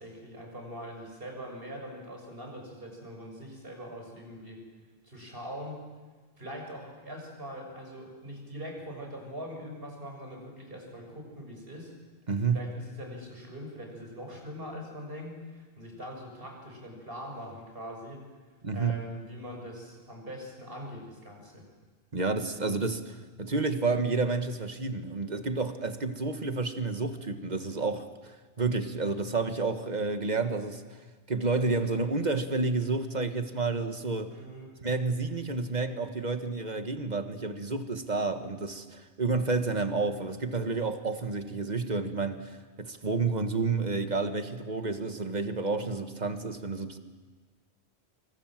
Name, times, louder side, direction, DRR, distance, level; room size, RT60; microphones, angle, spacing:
voice 1, 0.0-4.6 5.0-5.8 6.4-11.9 12.4-18.2 18.7-21.7 34.3-34.7, equal, 60° right, 7.0 m, -42 dB
voice 2, 12.3-12.7 18.6-19.0 22.1-30.8 31.3-34.4 34.8-47.0, right 3 dB, 45° right, 1.6 m, -30 dB
26.5 x 24.5 x 7.6 m
omnidirectional pair, 1.1 m